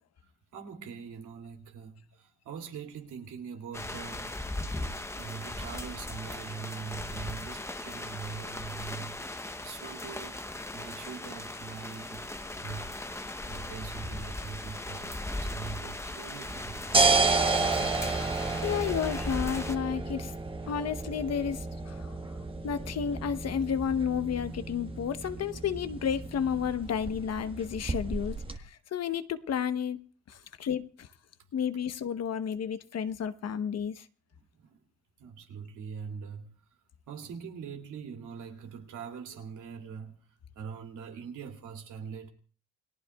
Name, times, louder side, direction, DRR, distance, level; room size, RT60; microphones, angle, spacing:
voice 1, 0.5-4.3 4.7-10.3 10.7-16.8 34.6-34.8 35.2-36.5 37.1-40.1 40.5-42.3, right 6 dB, 80° right, 2.7 m, -43 dB
sound 1, 3.7-19.8, left 1 dB, 10° left, 0.8 m, -38 dB
sound 2, 16.5-28.6, right 3 dB, 20° right, 1.3 m, -31 dB
voice 2, 18.6-20.3 20.7-22.1 22.6-28.4 28.6-30.0 30.3-31.1 31.5-34.0, left 8 dB, 55° left, 1.0 m, -31 dB
29.0 x 18.5 x 2.3 m
cardioid pair, 90°, 30 cm